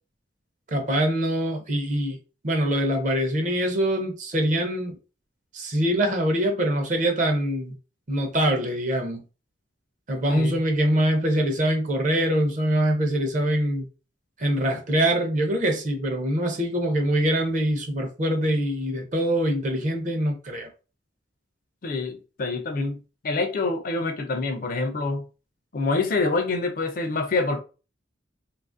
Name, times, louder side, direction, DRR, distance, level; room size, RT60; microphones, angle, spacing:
voice 1, 0.7-2.2 2.4-5.0 5.5-7.7 8.1-9.2 10.1-13.9 14.4-20.7, right 1 dB, 40° right, 0.6 m, -24 dB
voice 2, 10.3-10.6 21.8-23.0 23.2-25.2 25.7-27.6, left 3 dB, 45° left, 0.4 m, -26 dB
2.8 x 2.4 x 2.4 m
head